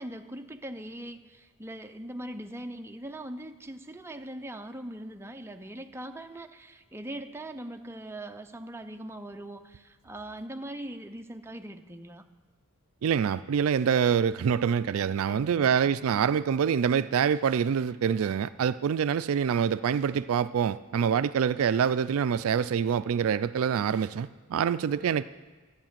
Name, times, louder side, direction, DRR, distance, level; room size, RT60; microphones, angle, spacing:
voice 1, 0.0-12.2 15.2-15.8, right 1 dB, 10° right, 6 dB, 0.6 m, -41 dB
voice 2, 13.0-25.2, right 7 dB, 70° right, 15 dB, 0.4 m, -26 dB
13.0 x 8.8 x 7.4 m, 1.3 s
head